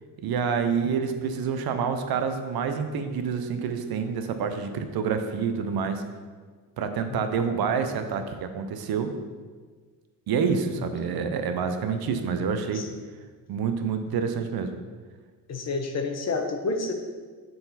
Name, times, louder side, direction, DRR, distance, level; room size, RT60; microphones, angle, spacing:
voice 1, 0.2-6.0 6.8-9.1 10.3-12.8 13.5-14.8, right 6 dB, 70° right, 7 dB, 0.7 m, -27 dB
voice 2, 15.5-16.9, left 3 dB, 40° left, 4 dB, 0.8 m, -29 dB
6.6 x 4.0 x 4.1 m, 1.5 s
cardioid pair, 95°, 39 cm